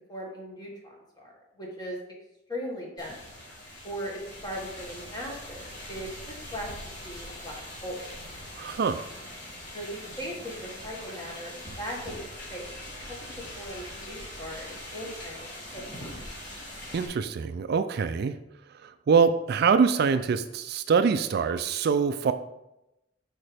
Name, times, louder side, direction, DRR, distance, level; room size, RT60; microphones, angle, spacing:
voice 1, 0.1-2.0 2.5-3.1 3.8-6.1 6.5-6.7 7.0-8.1 9.7-11.5 11.8-12.2 12.5-12.7 13.5-16.2, equal, 20° left, -2 dB, 1.7 m, -38 dB
sound 1, 3.0-17.1, left 1 dB, 45° left, 2.4 m, -42 dB
voice 2, 8.6-9.1 16.9-18.3 18.8-22.3, right 5 dB, 55° right, 10 dB, 0.3 m, -24 dB
8.5 x 5.0 x 3.4 m, 0.89 s
head